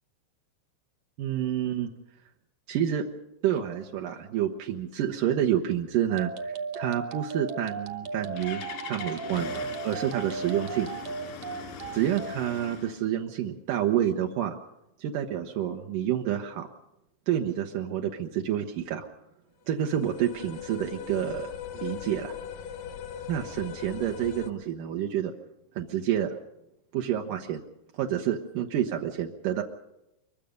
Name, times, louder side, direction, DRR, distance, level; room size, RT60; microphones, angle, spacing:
voice 1, 1.2-1.9 2.7-3.0 3.4-9.5 9.8-10.9 11.9-14.6 15.0-16.7 17.3-19.1 19.7-22.3 23.3-25.3 25.8-26.4 26.9-27.6 27.9-29.6, right 10 dB, 75° right, 2 dB, 2.0 m, -28 dB
sound 1, 6.1-12.4, right 5 dB, 55° right, 2.1 m, -36 dB
Engine starting, 7.8-13.0, left 6 dB, 90° left, 5.0 m, -41 dB
sound 2, 19.7-24.5, left 9 dB, 75° left, 2.0 m, -40 dB
24.5 x 23.0 x 5.2 m, 0.88 s
omnidirectional pair, 5.2 m